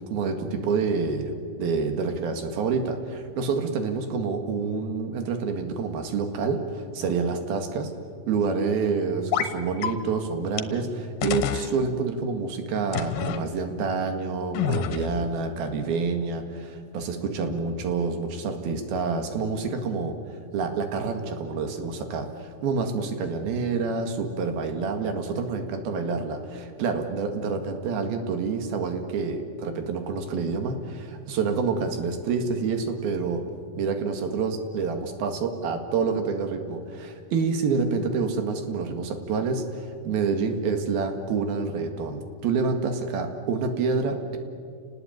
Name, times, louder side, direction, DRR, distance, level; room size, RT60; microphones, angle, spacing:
voice 1, 0.0-7.9 8.3-20.2 20.5-33.4 33.7-44.4, right 4 dB, 85° right, 6 dB, 3.8 m, -28 dB
sound 1, 9.3-9.5 9.8-9.9 10.6-10.7 11.2-11.7 12.9-13.4 14.5-15.3, left 9 dB, 75° left, 2.7 m, -27 dB
30.0 x 19.0 x 9.2 m, 2.3 s
omnidirectional pair, 4.1 m